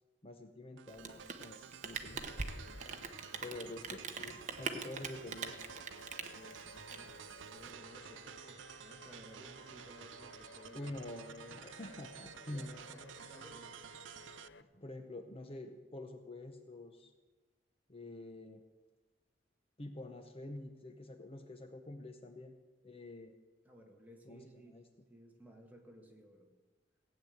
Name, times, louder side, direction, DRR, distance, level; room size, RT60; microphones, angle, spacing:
voice 1, 0.2-2.3 3.4-5.6 10.7-12.8 14.7-17.1 17.9-18.6 19.8-22.5 22.8-23.3 24.3-24.8, left 2 dB, 30° left, 6 dB, 0.9 m, -47 dB
sound 1, 0.8-14.5, right 9 dB, 80° right, 0.4 m, -52 dB
Rain, 0.9-7.7, right 5 dB, 40° right, 1.0 m, -43 dB
sound 2, 2.1-14.6, left 3 dB, 70° left, 0.8 m, -57 dB
voice 2, 6.3-11.3 12.5-13.8 23.6-24.8 25.1-26.5, right 1 dB, 10° right, 1 dB, 1.9 m, -58 dB
16.5 x 8.8 x 7.9 m, 1.3 s
head